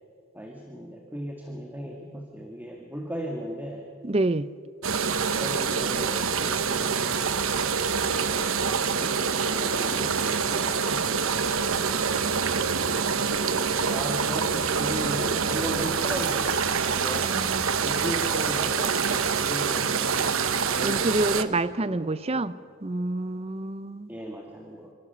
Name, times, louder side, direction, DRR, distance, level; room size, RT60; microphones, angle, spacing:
voice 1, 0.3-3.9 5.2-7.8 9.0-11.1 12.8-17.4 17.8-22.5 24.1-24.9, equal, 10° right, 1 dB, 1.8 m, -37 dB
voice 2, 4.0-4.5 17.2-17.6 20.8-24.1, right 2 dB, 30° right, 15 dB, 0.6 m, -28 dB
sound 1, 4.8-21.4, right 6 dB, 80° right, 1.1 m, -26 dB
26.5 x 24.5 x 6.8 m, 2.4 s
head